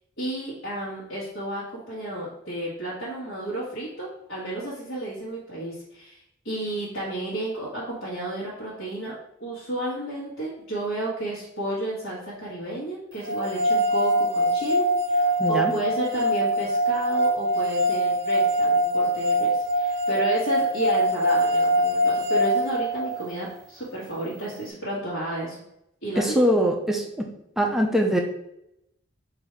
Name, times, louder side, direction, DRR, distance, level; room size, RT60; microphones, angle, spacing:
voice 1, 0.2-6.2 6.4-9.1 9.4-25.6 26.0-26.2, right 1 dB, 65° left, -9 dB, 1.5 m, -32 dB
sound 1, 13.3-23.4, right 1 dB, 60° right, 0.7 m, -23 dB
voice 2, 15.4-15.7 26.2-27.3 27.6-28.2, equal, ahead, 1 dB, 0.5 m, -22 dB
4.0 x 2.7 x 4.4 m, 0.79 s
head